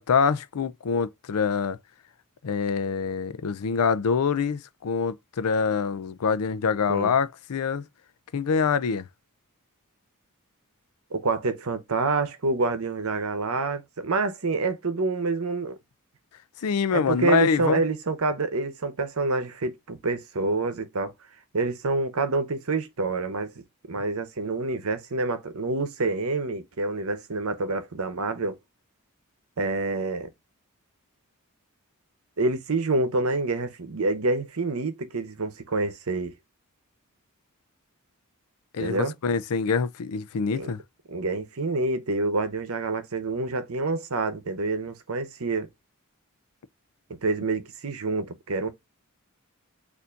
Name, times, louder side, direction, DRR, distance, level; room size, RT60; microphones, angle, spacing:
voice 1, 0.0-1.8 2.4-7.8 8.3-9.0 16.6-17.8 38.7-40.8, left 6 dB, 80° left, 0.5 m, -25 dB
voice 2, 11.1-15.8 16.9-21.1 21.5-23.5 23.8-28.6 29.6-30.3 32.4-36.3 38.8-39.1 40.5-40.7 41.1-45.7 47.2-48.7, right 3 dB, 65° right, 0.9 m, -27 dB
6.8 x 2.7 x 2.5 m
head